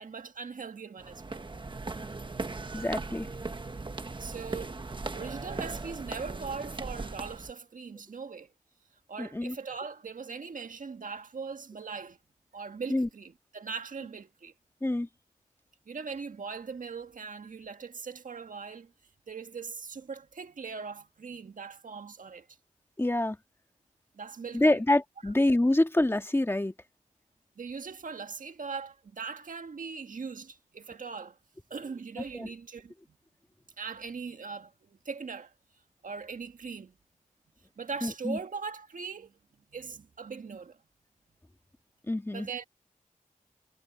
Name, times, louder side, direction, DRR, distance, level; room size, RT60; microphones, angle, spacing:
voice 1, 0.0-1.4 4.2-4.8 5.1-8.5 9.1-12.2 12.5-14.5 15.8-18.9 19.3-22.6 24.1-24.8 27.5-31.4 31.7-33.2 33.8-35.5 36.0-36.9 37.8-39.4 39.7-40.8 42.3-42.6, right 5 dB, 75° right, 1.6 m, -40 dB
sound 1, 1.0-7.5, right 3 dB, 35° right, 1.3 m, -38 dB
voice 2, 2.7-3.3 9.2-9.6 12.9-13.1 14.8-15.1 23.0-23.4 24.5-26.7 32.3-32.5 38.0-38.4 42.0-42.5, left 1 dB, 15° left, 1.7 m, -26 dB
wide cardioid pair, 85°, 14 cm